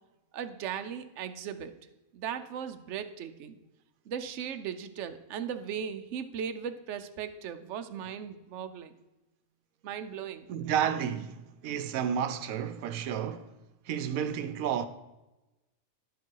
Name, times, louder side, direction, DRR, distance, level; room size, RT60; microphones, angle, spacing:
voice 1, 0.3-1.7 2.1-3.6 4.1-8.9 9.8-10.5, right 8 dB, 65° right, 0.9 m, -37 dB
voice 2, 10.5-13.6 13.9-14.9, right 9 dB, 90° right, 1.1 m, -31 dB
10.5 x 7.1 x 4.6 m
omnidirectional pair, 1.4 m